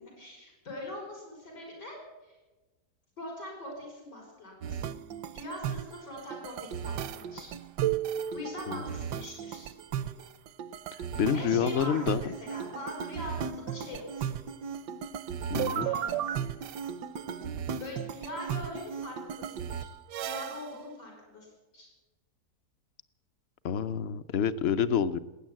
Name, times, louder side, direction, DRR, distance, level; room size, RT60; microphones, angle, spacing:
voice 1, 0.2-2.0 2.2-2.4 3.2-4.9 5.3-7.5 8.3-9.8 11.1-14.3 15.7-16.2 17.8-19.9 20.2-21.9, left 1 dB, 90° left, -1 dB, 5.0 m, -42 dB
sound 1, 4.6-20.7, right 9 dB, 85° right, 1.3 m, -35 dB
voice 2, 11.2-12.2 15.5-15.9 23.6-25.2, left 8 dB, 65° left, 13 dB, 0.6 m, -28 dB
20.0 x 9.4 x 7.5 m, 1.1 s
omnidirectional pair, 1.8 m